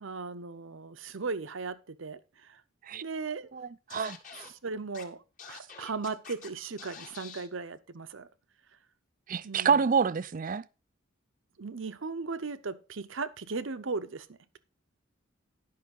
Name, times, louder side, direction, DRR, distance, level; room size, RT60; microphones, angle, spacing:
voice 1, 0.0-2.6 3.0-3.5 4.0-4.1 4.3-5.2 5.5-8.3 9.4-9.9 11.6-14.6, right 4 dB, 70° right, 0.8 m, -37 dB
voice 2, 3.5-4.2 9.3-10.6, right 6 dB, 40° right, 0.4 m, -27 dB
Scratching (performance technique), 3.9-4.5 4.9-5.0 5.4-6.5 6.8-7.5, left 6 dB, 40° left, 1.9 m, -46 dB
10.5 x 5.7 x 5.3 m
head